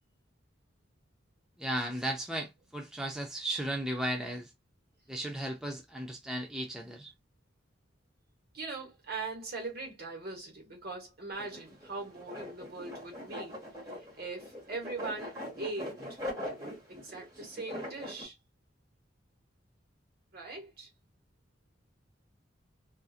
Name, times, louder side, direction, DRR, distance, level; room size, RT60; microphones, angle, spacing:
voice 1, 1.6-4.5 5.1-7.1, right 1 dB, 5° right, 0.4 m, -35 dB
voice 2, 8.5-13.6 13.9-16.2 16.9-18.4 20.3-20.9, right 3 dB, 55° right, 1.2 m, -41 dB
sound 1, 11.3-18.2, left 1 dB, 20° right, 1.5 m, -42 dB
2.6 x 2.5 x 2.4 m
head